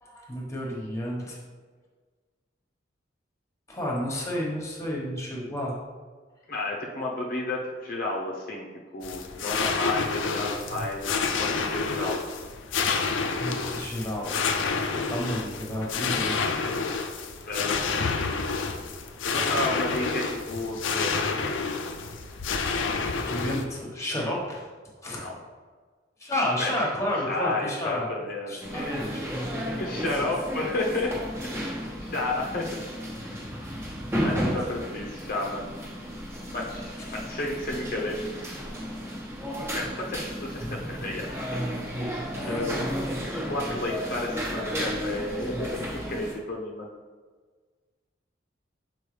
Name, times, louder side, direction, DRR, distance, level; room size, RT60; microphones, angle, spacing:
voice 1, 0.0-1.4 3.7-5.7 13.4-14.6 15.1-16.5 23.3-24.6 25.0-25.2 26.2-28.1 28.5-29.2 34.3-34.5 37.1-37.2 42.3-42.7, left 1 dB, 15° left, -3 dB, 1.2 m, -31 dB
voice 2, 6.5-8.7 8.9-12.2 17.5-18.1 19.2-21.3 25.1-25.3 26.6-26.7 27.3-28.9 29.7-31.1 31.6-32.7 33.2-33.4 34.2-35.7 36.5-38.4 39.7-41.6 42.5-42.8 43.3-46.9, left 2 dB, 45° left, -3 dB, 0.7 m, -32 dB
sound 1, 9.0-23.6, left 4 dB, 90° left, 0.5 m, -29 dB
sound 2, 28.6-46.3, equal, 15° right, 1.0 m, -33 dB
7.0 x 4.5 x 3.3 m, 1.5 s
head